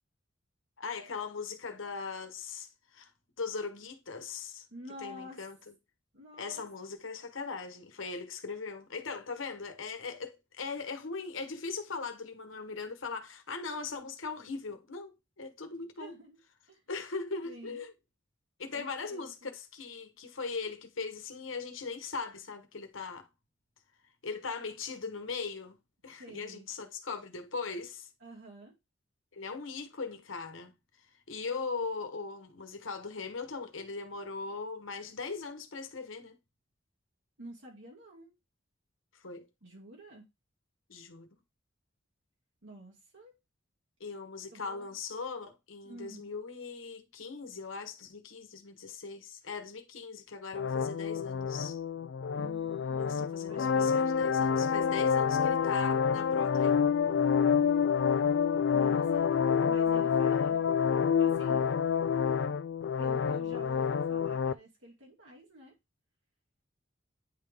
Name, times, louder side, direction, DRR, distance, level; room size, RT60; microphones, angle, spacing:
voice 1, 0.8-3.1 3.4-4.7 5.0-5.6 6.4-15.1 15.4-16.1 16.9-17.9 18.6-23.3 24.2-25.8 26.0-28.1 29.3-30.7 31.3-36.4 39.1-39.5 40.9-41.3 44.0-51.8 53.0-56.8, left 4 dB, 90° left, 1.2 m, -39 dB
voice 2, 4.7-5.4 6.1-6.7 16.0-16.4 16.7-16.8 17.4-17.8 18.7-19.5 26.2-26.7 28.2-28.7 37.4-38.3 39.6-40.2 42.6-43.3 44.5-45.0 45.8-46.2 52.3-54.0 58.7-59.3 59.6-60.6 61.2-61.7 63.0-65.8, equal, 75° right, 2.3 m, -49 dB
sound 1, 50.5-64.5, left 7 dB, 65° left, 0.4 m, -28 dB
9.4 x 3.5 x 3.6 m
head